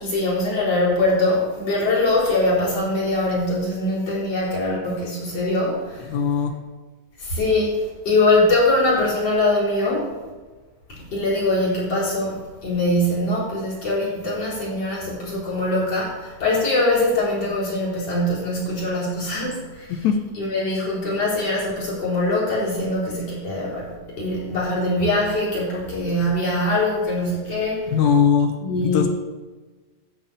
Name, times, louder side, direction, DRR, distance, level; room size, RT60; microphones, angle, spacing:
voice 1, 0.0-6.1 7.2-10.1 10.9-20.1 20.4-27.9 28.6-29.1, left 2 dB, 40° left, -6 dB, 5.1 m, -22 dB
voice 2, 6.1-6.5 19.9-20.2 27.9-28.5 28.8-29.1, left 7 dB, 75° left, 6 dB, 1.8 m, -19 dB
11.0 x 5.8 x 8.7 m, 1.3 s
omnidirectional pair, 4.1 m